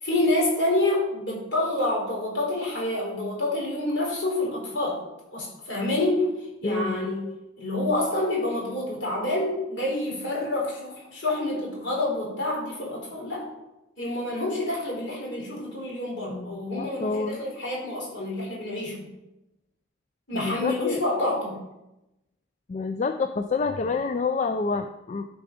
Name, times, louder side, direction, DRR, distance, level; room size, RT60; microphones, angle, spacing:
voice 1, 0.0-5.0 5.3-7.3 7.6-13.5 14.0-19.0 20.3-21.6, left 1 dB, 60° left, -3 dB, 3.6 m, -27 dB
voice 2, 6.6-7.1 16.3-17.4 20.3-21.0 22.7-25.3, left 4 dB, 35° left, 7 dB, 0.3 m, -28 dB
12.0 x 4.9 x 5.0 m, 0.95 s
head